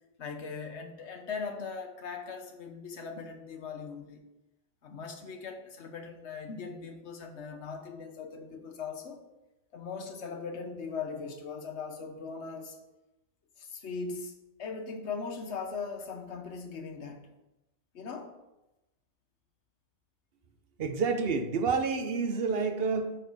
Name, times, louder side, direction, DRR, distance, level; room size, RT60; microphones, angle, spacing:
voice 1, 0.2-4.2 4.8-9.2 9.7-12.8 13.6-17.3 17.9-18.3, left 5 dB, 85° left, 5 dB, 1.3 m, -39 dB
voice 2, 20.8-23.2, right 4 dB, 60° right, 7 dB, 0.9 m, -29 dB
9.0 x 4.5 x 4.9 m, 0.97 s
omnidirectional pair, 1.1 m